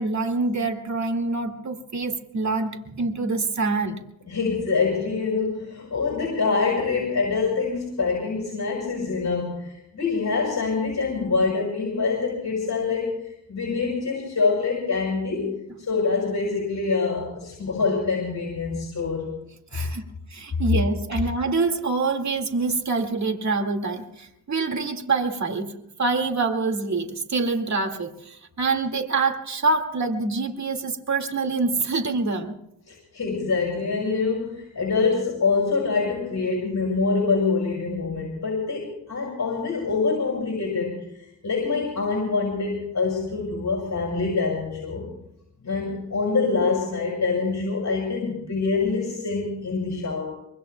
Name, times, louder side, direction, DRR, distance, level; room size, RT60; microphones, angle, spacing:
voice 1, 0.0-4.0 19.7-20.0 20.3-32.6, right 3 dB, 40° right, 4 dB, 2.2 m, -26 dB
voice 2, 4.3-15.6 15.9-19.2 32.9-41.1 41.4-45.1 45.6-50.3, left 4 dB, 45° left, -3 dB, 6.2 m, -25 dB
24.5 x 24.5 x 2.3 m, 0.80 s
cardioid pair, 75°, 41 cm